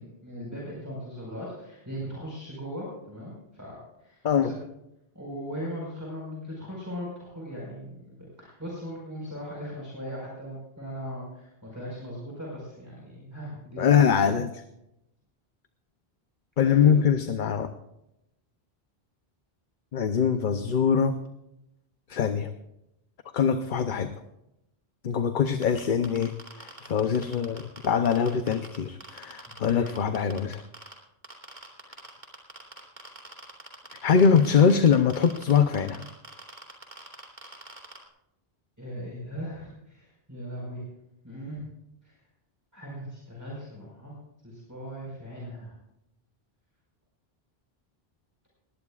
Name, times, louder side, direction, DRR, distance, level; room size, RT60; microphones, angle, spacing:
voice 1, 0.0-4.6 5.1-13.9 16.6-17.0 29.6-29.9 38.8-40.9 41.2-41.7 42.0-42.1 42.7-44.1 44.4-45.7, equal, 15° right, -4 dB, 4.8 m, -38 dB
voice 2, 13.8-14.5 16.6-17.7 19.9-21.2 22.1-22.5 23.3-24.1 25.0-26.3 26.6-30.6 34.0-36.0, left 7 dB, 55° left, 8 dB, 0.9 m, -23 dB
sound 1, 25.6-28.8 29.0-30.9 31.2-38.0, right 2 dB, 45° right, 2.9 m, -43 dB
20.0 x 18.0 x 2.4 m, 0.86 s
omnidirectional pair, 1.0 m